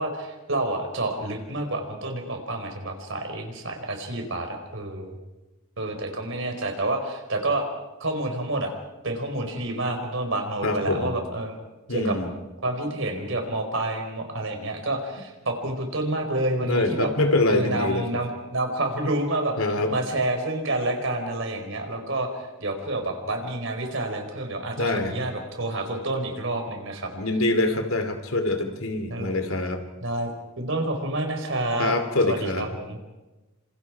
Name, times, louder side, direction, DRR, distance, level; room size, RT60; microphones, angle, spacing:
voice 1, 0.0-5.2 5.8-7.7 8.0-8.7 9.0-11.6 11.9-12.2 12.6-17.1 17.5-19.5 19.9-27.1 29.1-29.4 30.0-30.3 30.6-31.9 32.2-33.0, right 2 dB, 65° right, 4 dB, 4.6 m, -28 dB
voice 2, 10.6-11.1 11.9-12.3 16.7-18.0 19.6-19.9 24.8-25.1 27.1-29.8 31.8-32.7, left 2 dB, 80° left, 6 dB, 3.0 m, -24 dB
28.0 x 26.5 x 4.9 m, 1.1 s
head